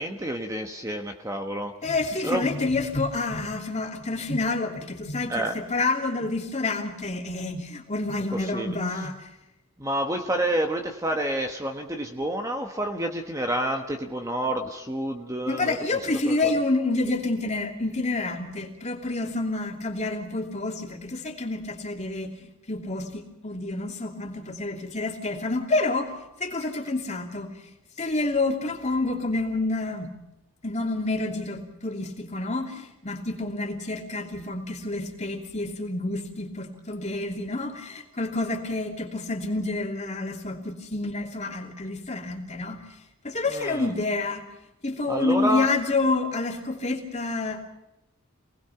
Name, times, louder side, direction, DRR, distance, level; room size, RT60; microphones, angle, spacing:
voice 1, 0.0-1.7 2.2-2.5 5.3-5.6 8.3-8.8 9.8-15.8 16.2-16.5 43.5-43.9 45.1-45.7, right 1 dB, 15° right, 3 dB, 1.3 m, -29 dB
voice 2, 1.8-9.3 15.5-27.7 28.0-30.1 30.6-42.8 43.2-44.5 44.8-47.6, left 2 dB, 30° left, 2 dB, 2.9 m, -28 dB
27.5 x 19.5 x 5.8 m, 0.93 s
head